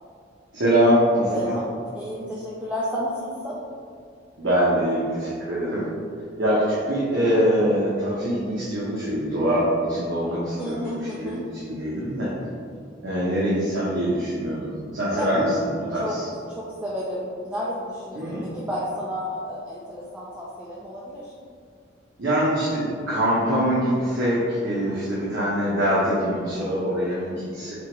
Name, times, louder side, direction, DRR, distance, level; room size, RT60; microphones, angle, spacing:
voice 1, 0.5-1.5 4.4-5.9 6.4-12.3 13.0-16.3 18.1-18.5 22.2-27.7, equal, 65° right, -8 dB, 0.9 m, -23 dB
voice 2, 1.3-3.6 10.5-11.4 15.1-15.3 16.0-16.1 16.5-21.3, equal, 5° right, -7 dB, 0.4 m, -32 dB
3.5 x 2.9 x 4.4 m, 2.2 s
head